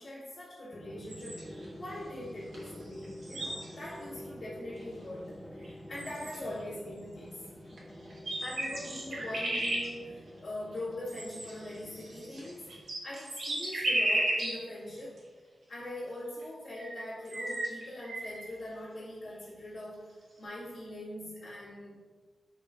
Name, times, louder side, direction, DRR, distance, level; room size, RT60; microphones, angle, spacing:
voice 1, 0.0-7.4 8.4-15.2 15.7-20.1 20.4-22.0, left 1 dB, 45° left, -11 dB, 2.2 m, -42 dB
Drum, 0.7-13.1, equal, 15° left, 1.5 m, -48 dB
sound 1, 1.1-1.7 2.5-2.7 2.9-4.0 4.7-4.8 5.6-5.7 5.9-6.6 7.7-7.8 8.1-9.9 11.1-14.6 15.2-15.3 16.4-16.5 16.7-18.5, right 1 dB, 70° right, 2.1 m, -34 dB
11.5 x 5.4 x 2.6 m, 1.4 s
wide cardioid pair, 145°, 0 cm